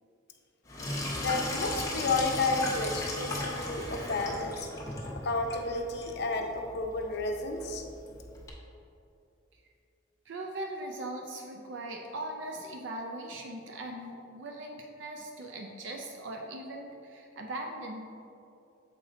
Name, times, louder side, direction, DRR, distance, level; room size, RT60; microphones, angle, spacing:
Sink (filling or washing), 0.7-8.5, left 1 dB, 15° left, 1.0 m, -37 dB
voice 1, 1.2-4.7 5.2-7.8, left 3 dB, 60° left, 4 dB, 0.7 m, -31 dB
voice 2, 10.3-18.1, right 1 dB, 75° right, 2 dB, 0.6 m, -40 dB
7.4 x 4.9 x 3.8 m, 2.7 s
head